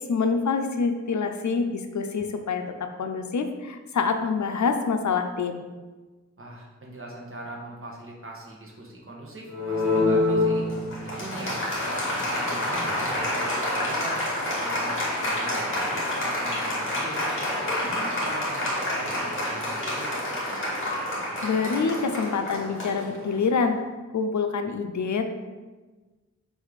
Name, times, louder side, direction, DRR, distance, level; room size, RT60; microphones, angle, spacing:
voice 1, 0.0-5.6 21.1-23.8 24.1-25.3, left 5 dB, 75° left, 6 dB, 0.6 m, -26 dB
voice 2, 6.4-10.6 11.1-17.2 17.6-20.4, right 1 dB, 45° right, -3 dB, 1.4 m, -40 dB
Applause, 9.5-23.6, left 1 dB, 45° left, 2.0 m, -28 dB
5.2 x 5.0 x 4.1 m, 1.3 s
wide cardioid pair, 90°, 29 cm